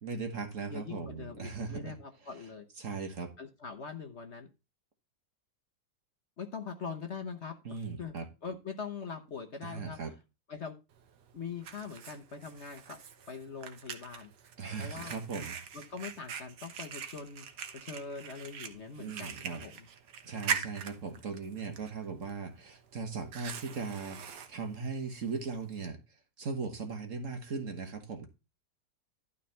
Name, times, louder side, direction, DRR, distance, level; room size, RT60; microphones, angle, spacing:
voice 1, 0.0-1.9 2.8-3.3 7.6-8.3 9.6-10.1 14.6-15.6 19.0-19.6 20.2-26.0 26.4-28.3, right 5 dB, 50° right, 1.5 m, -38 dB
voice 2, 0.7-2.7 3.4-4.5 6.4-8.1 8.4-10.1 10.5-10.7 11.3-13.0 13.3-14.3 14.8-15.2 15.7-17.4 17.7-19.9, left 5 dB, 45° left, 1.1 m, -42 dB
Fire, 10.9-25.9, right 7 dB, 75° right, 1.6 m, -43 dB
12.0 x 4.1 x 5.6 m
omnidirectional pair, 1.9 m